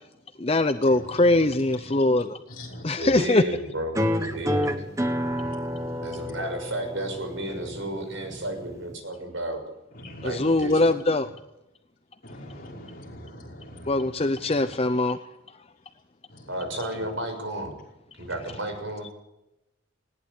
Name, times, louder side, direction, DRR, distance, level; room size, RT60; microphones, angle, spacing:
voice 1, 0.4-2.4 2.8-3.4 10.2-11.3 13.9-15.2, left 2 dB, 30° left, 10 dB, 0.7 m, -22 dB
voice 2, 3.0-4.8 6.0-9.6 10.2-10.8 16.5-17.7 18.2-19.1, right 1 dB, 65° right, 5 dB, 6.4 m, -32 dB
sound 1, 3.9-8.9, equal, 15° right, 1.5 m, -30 dB
voice 3, 5.2-6.1 10.0-10.2 12.2-13.9, left 1 dB, 45° left, -1 dB, 5.7 m, -42 dB
20.0 x 18.0 x 8.3 m, 0.93 s
head